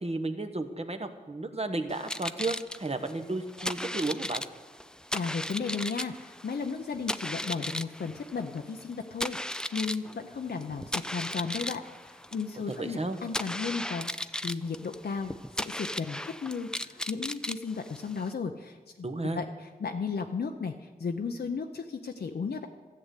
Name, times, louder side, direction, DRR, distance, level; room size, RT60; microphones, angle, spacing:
voice 1, 0.0-4.4 12.7-13.2 19.0-19.4, right 2 dB, 40° right, 7 dB, 1.2 m, -33 dB
sound 1, 1.9-18.3, left 1 dB, 5° left, 0.4 m, -37 dB
voice 2, 5.1-15.3 15.6-18.8 19.3-22.7, left 5 dB, 90° left, 3 dB, 0.7 m, -35 dB
13.5 x 7.8 x 8.3 m, 1.4 s
wide cardioid pair, 60°, 16 cm